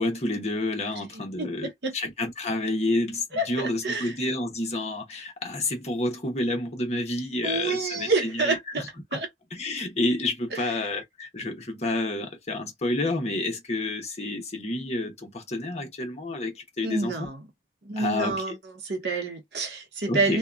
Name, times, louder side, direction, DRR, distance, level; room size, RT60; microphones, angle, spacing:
voice 1, 0.0-8.9 9.1-9.2 9.5-17.3 18.0-18.4 20.1-20.4, left 2 dB, 40° left, 1.0 m, -29 dB
voice 2, 1.1-1.9 3.3-4.2 7.4-8.8 9.1-9.3 10.5-10.6 16.8-17.5 17.8-20.4, right 3 dB, 70° right, 0.9 m, -28 dB
2.7 x 2.3 x 2.4 m
head